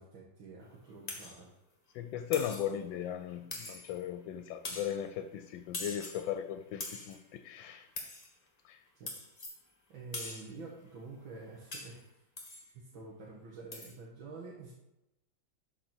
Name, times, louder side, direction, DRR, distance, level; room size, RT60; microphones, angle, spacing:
voice 1, 0.0-1.5 9.0-9.1 9.9-12.0 12.9-14.7, right 3 dB, 85° right, 2.2 m, -48 dB
sound 1, 1.1-1.4 2.3-2.7 3.5-4.0 4.6-5.0 5.7-6.3 6.8-7.2 8.0-8.3 9.1-9.6 10.1-10.5 11.7-12.0 12.4-12.7 13.7-13.9, left 2 dB, 20° left, 1.4 m, -42 dB
voice 2, 1.9-7.9 8.7-8.8, left 10 dB, 80° left, 1.3 m, -37 dB
12.0 x 4.8 x 4.4 m
omnidirectional pair, 2.1 m